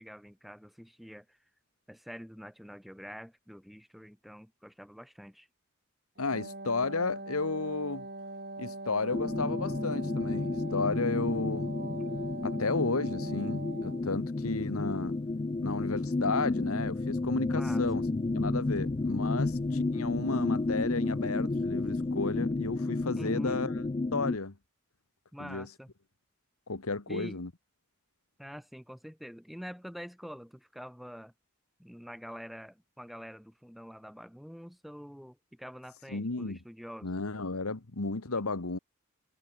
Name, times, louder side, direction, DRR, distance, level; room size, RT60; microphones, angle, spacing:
voice 1, 0.0-1.4 1.9-5.5 17.5-18.0 23.2-23.6 25.3-25.9 27.1-27.4 28.4-31.3 31.8-37.1, equal, ahead, 4.6 m, -46 dB
voice 2, 6.2-8.1 8.6-11.7 12.4-15.2 15.6-18.1 18.3-23.7 24.1-24.5 25.4-25.7 26.7-27.5 36.1-36.6 37.0-38.8, left 3 dB, 85° left, 1.5 m, -33 dB
Wind instrument woodwind instrument, 6.2-14.1, right 2 dB, 45° right, 4.0 m, -42 dB
sound 1, 9.1-24.4, left 2 dB, 25° left, 0.3 m, -31 dB
head